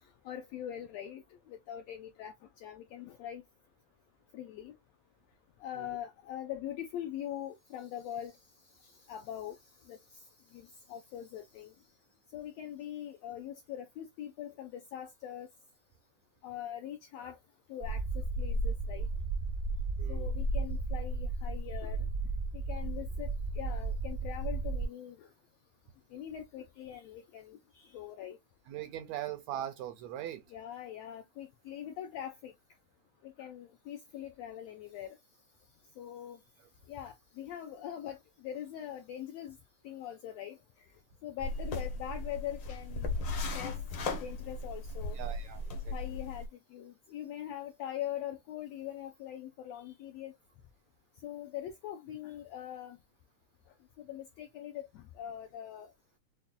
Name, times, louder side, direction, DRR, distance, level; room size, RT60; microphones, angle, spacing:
voice 1, 0.2-1.2 1.5-2.3 2.6-3.4 4.3-4.7 5.6-8.3 9.1-9.6 9.9-10.0 10.5-11.7 12.3-15.5 16.4-17.4 17.7-19.1 20.1-22.0 22.5-25.3 26.1-28.4 30.5-32.5 33.2-35.1 36.0-36.4 36.9-38.2 38.4-39.6 39.8-40.6 41.2-43.1 43.5-43.8 44.2-45.2 45.9-46.5 46.7-50.3 51.2-53.0 54.1-55.9, left 11 dB, 90° left, 1.5 m, -42 dB
sound 1, 17.8-24.9, right 2 dB, 65° right, 0.5 m, -34 dB
voice 2, 20.0-20.3 28.7-30.4 45.1-45.9, right 12 dB, 80° right, 1.6 m, -40 dB
sound 2, 41.4-46.5, left 3 dB, 75° left, 1.1 m, -37 dB
5.6 x 2.1 x 2.3 m
omnidirectional pair, 3.6 m